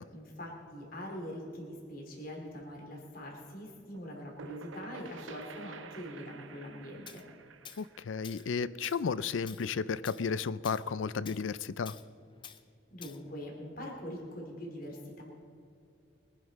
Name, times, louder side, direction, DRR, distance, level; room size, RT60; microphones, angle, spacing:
voice 1, 0.1-7.2 12.9-15.2, equal, 45° left, 0 dB, 2.9 m, -43 dB
sound 1, 3.9-9.5, right 4 dB, 85° right, 0.7 m, -50 dB
Tools, 7.1-7.2 7.7-7.9 8.2-8.5 8.8-9.0 9.5-9.7 10.0-10.3 10.6-10.9 11.3-11.4 11.9-12.1 12.4-12.6 13.0-13.2, left 8 dB, 25° left, 0.5 m, -49 dB
voice 2, 7.8-12.0, left 5 dB, 80° left, 17 dB, 0.4 m, -33 dB
23.0 x 10.0 x 4.1 m, 2.4 s
head